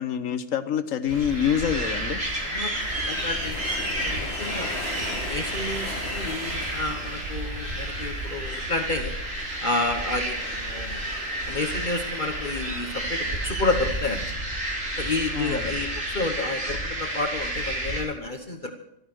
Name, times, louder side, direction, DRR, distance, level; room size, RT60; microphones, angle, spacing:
voice 1, 0.0-2.2 15.3-15.7, left 8 dB, 90° left, 10 dB, 1.4 m, -26 dB
sound 1, 1.1-14.2, left 3 dB, 55° left, 2.1 m, -42 dB
sound 2, 1.1-18.0, right 1 dB, 75° right, 4.0 m, -30 dB
voice 2, 2.4-2.7 3.1-3.6 4.0-4.8 5.3-9.2 9.6-11.0 11.4-14.2 15.0-18.7, left 2 dB, 40° left, 5 dB, 1.2 m, -30 dB
14.5 x 13.0 x 6.1 m, 0.77 s
omnidirectional pair, 1.3 m